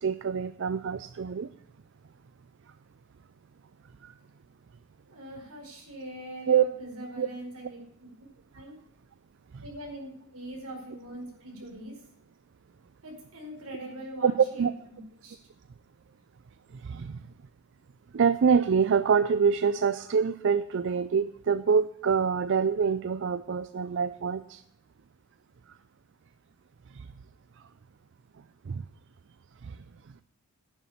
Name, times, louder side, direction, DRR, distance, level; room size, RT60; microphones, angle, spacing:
voice 1, 0.0-1.5 4.0-4.1 6.5-6.7 7.2-7.3 9.5-9.6 14.2-14.7 16.7-17.2 18.1-24.6 26.9-27.1 28.7-28.8 29.6-29.8, right 6 dB, 55° right, 14 dB, 0.4 m, -25 dB
voice 2, 5.1-7.8 8.5-8.7 9.6-12.0 13.0-15.4, right 1 dB, 75° right, 0 dB, 4.9 m, -42 dB
10.5 x 7.3 x 7.1 m, 0.76 s
head